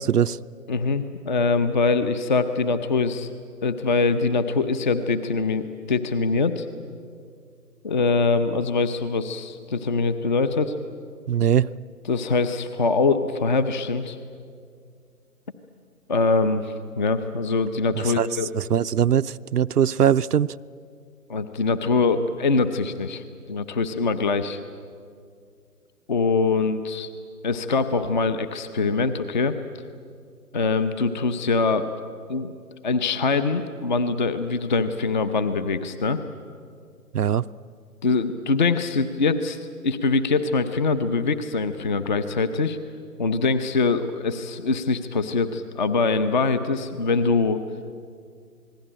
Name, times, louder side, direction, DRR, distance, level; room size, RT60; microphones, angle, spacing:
voice 1, 0.1-0.4 11.3-11.7 18.0-18.3 18.5-20.5 37.1-37.5, right 9 dB, 70° right, 12 dB, 0.6 m, -21 dB
voice 2, 0.7-3.3 3.6-6.7 7.8-10.8 12.1-14.2 16.1-18.5 21.3-24.6 26.1-27.1 27.4-29.6 30.5-31.9 32.3-32.6 32.8-36.2 38.0-42.8 43.2-47.6, left 4 dB, 30° left, 11 dB, 0.8 m, -23 dB
27.5 x 20.0 x 8.9 m, 2.2 s
figure-of-eight pair, 150°, 48 cm